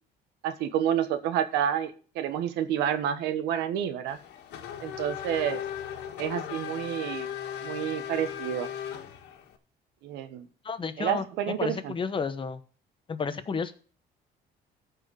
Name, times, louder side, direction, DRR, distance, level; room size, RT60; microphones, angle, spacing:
voice 1, 0.4-4.2 4.8-5.6 6.2-7.3 7.6-8.7 10.0-10.5 11.0-11.9, right 10 dB, 90° right, 10 dB, 1.3 m, -29 dB
Race car auto racing / Accelerating revving vroom, 4.1-9.6, left 9 dB, 85° left, 1.7 m, -37 dB
voice 2, 10.6-12.6 13.1-13.7, left 5 dB, 30° left, 12 dB, 1.0 m, -32 dB
14.5 x 4.8 x 6.4 m, 0.41 s
cardioid pair, 110°, 17 cm